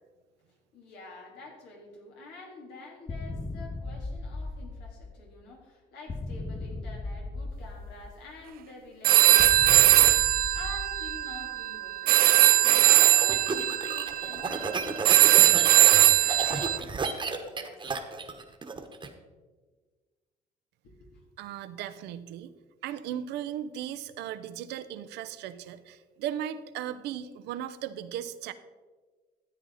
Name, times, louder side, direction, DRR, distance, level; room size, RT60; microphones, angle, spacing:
voice 1, 0.7-12.1 12.4-17.8 20.8-21.2, left 2 dB, 85° left, -1 dB, 3.5 m, -47 dB
sound 1, 3.1-5.4 6.1-8.4 9.4-11.7, left 2 dB, 20° left, 0.6 m, -37 dB
sound 2, 9.0-16.8, right 14 dB, 60° right, 0.4 m, -21 dB
sound 3, 12.6-19.1, right 4 dB, 25° right, 1.3 m, -33 dB
voice 2, 21.4-22.5 22.8-28.5, right 10 dB, 85° right, 12 dB, 0.8 m, -37 dB
13.5 x 8.9 x 4.1 m, 1.4 s
cardioid pair, 110°, 17 cm